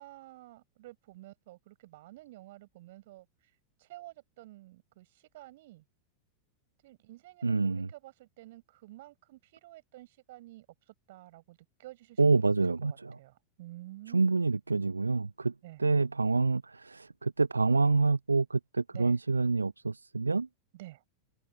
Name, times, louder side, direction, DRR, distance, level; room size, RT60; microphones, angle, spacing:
voice 1, 0.0-3.3 3.8-5.8 6.8-10.7 11.1-12.2 12.8-14.4 15.6-15.8 18.9-19.2 20.7-21.0, right 17 dB, 55° right, 7.1 m, -50 dB
voice 2, 7.4-7.9 12.2-13.2 14.1-15.5 15.8-20.5, right 3 dB, 80° right, 0.5 m, -27 dB
figure-of-eight pair, 90°, 0 cm